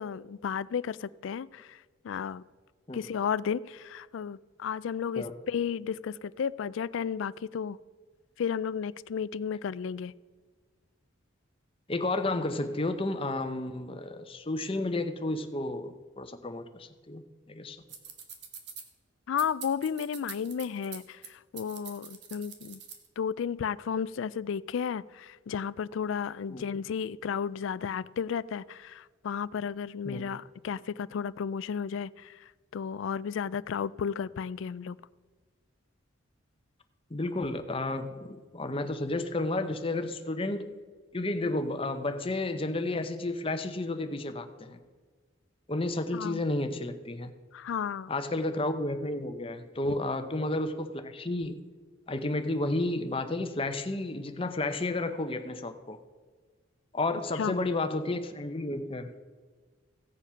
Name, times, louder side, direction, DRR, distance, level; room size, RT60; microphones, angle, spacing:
voice 1, 0.0-2.4 2.9-7.8 8.4-10.1 19.3-22.8 23.2-35.0 46.1-46.4 47.5-48.1 49.8-50.0 57.4-57.6, left 7 dB, 70° left, 19 dB, 0.3 m, -33 dB
voice 2, 11.9-17.8 26.5-26.6 30.0-30.3 37.1-40.8 41.1-44.8 45.7-47.3 48.1-51.6 52.1-56.0 56.9-59.3, left 2 dB, 25° left, 8 dB, 0.7 m, -32 dB
sound 1, 17.9-18.9 19.4-21.3 21.6-23.1, right 7 dB, 55° right, 1.3 m, -44 dB
16.0 x 7.1 x 5.6 m, 1.5 s
head